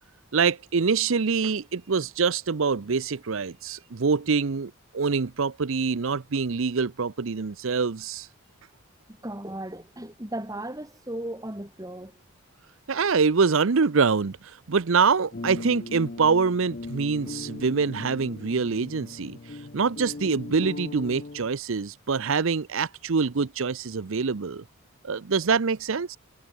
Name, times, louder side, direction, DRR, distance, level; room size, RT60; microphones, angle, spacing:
voice 1, 0.3-8.3 12.9-24.6 25.0-26.2, right 5 dB, 60° right, 0.6 m, -25 dB
voice 2, 9.2-12.2, right 1 dB, 15° right, 3.2 m, -36 dB
sound 1, 15.3-21.5, left 2 dB, 40° left, 0.7 m, -39 dB
head